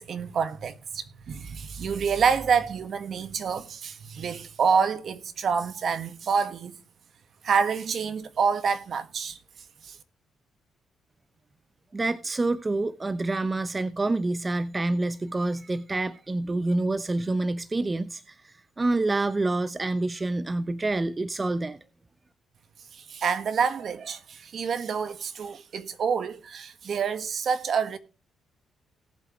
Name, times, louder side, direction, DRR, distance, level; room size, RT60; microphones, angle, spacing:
voice 1, 0.0-6.8 7.4-9.4 9.8-10.0 22.9-28.0, right 6 dB, 55° right, 1.4 m, -27 dB
voice 2, 11.9-21.8, right 2 dB, 25° right, 0.6 m, -27 dB
18.0 x 7.7 x 3.1 m
cardioid pair, 90°, 0 cm